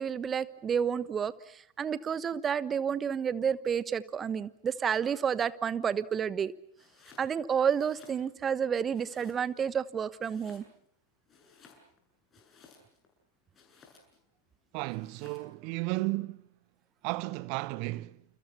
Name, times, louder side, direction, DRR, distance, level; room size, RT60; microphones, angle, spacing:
voice 1, 0.0-6.5 7.2-10.6, right 7 dB, 20° right, 1.2 m, -30 dB
Domestic sounds home sounds, 6.7-7.3 7.7-8.6 8.9-9.7 10.2-10.9 11.3-13.1 13.5-14.3 14.9-15.5, left 5 dB, 25° left, 8.0 m, -58 dB
voice 2, 14.7-16.4 17.0-18.2, right 22 dB, 45° right, 1.0 m, -34 dB
30.0 x 29.0 x 5.8 m
figure-of-eight pair, 90°, 0 cm